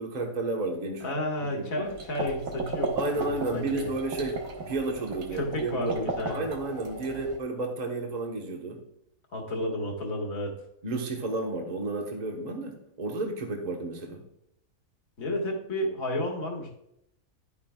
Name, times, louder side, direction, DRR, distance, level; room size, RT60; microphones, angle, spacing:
voice 1, 0.0-1.1 1.4-1.9 3.0-8.8 10.8-14.2, right 2 dB, 30° right, 1 dB, 1.2 m, -32 dB
voice 2, 1.0-3.9 5.3-6.5 9.3-10.5 15.2-16.7, left 1 dB, 70° left, 0 dB, 2.0 m, -32 dB
sound 1, 1.8-7.4, right 3 dB, 70° right, 1.7 m, -36 dB
11.0 x 9.8 x 2.3 m, 0.77 s
omnidirectional pair, 1.5 m